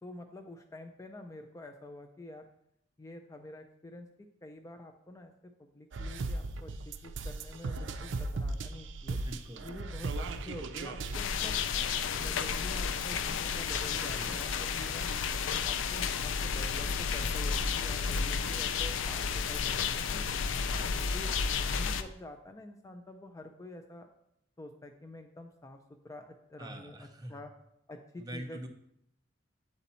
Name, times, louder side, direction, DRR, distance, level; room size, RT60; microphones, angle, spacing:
voice 1, 0.0-2.5 3.0-4.1 4.4-5.3 5.6-9.2 9.6-11.5 12.2-15.1 15.6-20.2 21.1-24.1 24.6-27.5 27.9-28.7, left 1 dB, 15° left, 5 dB, 0.4 m, -48 dB
sound 1, 5.9-11.2, right 3 dB, 75° right, 0.4 m, -37 dB
voice 2, 9.2-9.7 14.1-14.5 20.7-21.2 26.6-27.4 28.2-28.7, right 1 dB, 20° right, 5 dB, 0.6 m, -44 dB
sound 2, 11.1-22.0, left 6 dB, 85° left, 0.4 m, -32 dB
8.1 x 4.1 x 4.2 m, 0.76 s
head